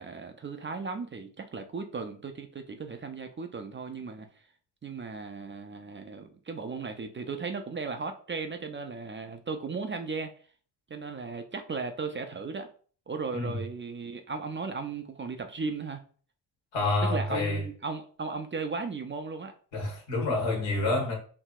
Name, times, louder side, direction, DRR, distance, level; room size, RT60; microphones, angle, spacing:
voice 1, 0.0-4.3 4.8-10.3 10.9-12.7 13.1-16.0 17.0-19.5, right 4 dB, 25° right, 0.5 m, -36 dB
voice 2, 16.7-17.6 19.7-21.1, left 2 dB, 70° left, 1.5 m, -28 dB
4.6 x 2.7 x 2.4 m
hypercardioid pair, 50°, 46 cm